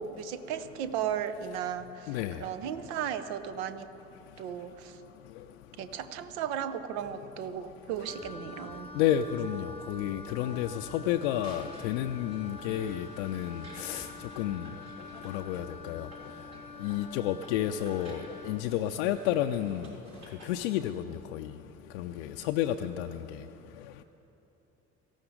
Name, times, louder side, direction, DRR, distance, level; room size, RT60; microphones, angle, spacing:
voice 1, 0.0-3.9 4.4-5.0 5.8-8.9, right 8 dB, 70° right, 11 dB, 0.7 m, -35 dB
voice 2, 2.1-2.4 8.9-14.1 14.4-14.7 15.2-16.1 16.8-19.9 20.4-21.5 21.9-23.2, left 11 dB, 70° left, 7 dB, 0.5 m, -31 dB
Wind instrument woodwind instrument, 8.0-18.7, left 3 dB, 15° left, 0.9 m, -47 dB
sound 1, 8.1-15.8, right 1 dB, 20° right, 1.3 m, -53 dB
sound 2, 11.3-20.9, right 2 dB, 50° right, 3.9 m, -55 dB
18.0 x 14.0 x 3.8 m, 2.9 s
figure-of-eight pair, 45°, 34 cm